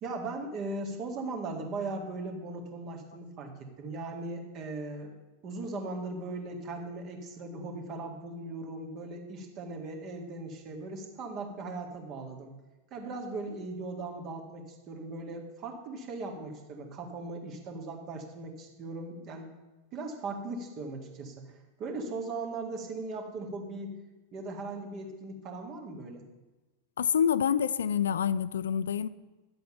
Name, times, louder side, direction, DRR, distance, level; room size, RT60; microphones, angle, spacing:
voice 1, 0.0-3.5 3.8-5.1 5.4-12.5 12.9-19.5 19.9-23.9 24.3-26.2, right 3 dB, 35° right, 1.9 m, -38 dB
voice 2, 27.0-29.1, left 8 dB, 65° left, 0.3 m, -27 dB
10.5 x 7.9 x 5.7 m
figure-of-eight pair, 90°, 0 cm